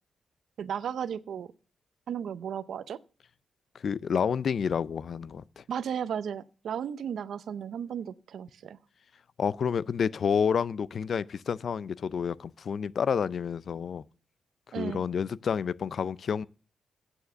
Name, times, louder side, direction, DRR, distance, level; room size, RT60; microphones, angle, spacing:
voice 1, 0.6-1.5 2.1-3.0 5.7-8.8 14.7-15.0, right 8 dB, 75° right, 0.6 m, -34 dB
voice 2, 3.7-5.6 9.4-14.0 14.8-16.4, left 7 dB, 60° left, 0.4 m, -29 dB
9.0 x 7.0 x 6.8 m
cardioid pair, 75°, 0 cm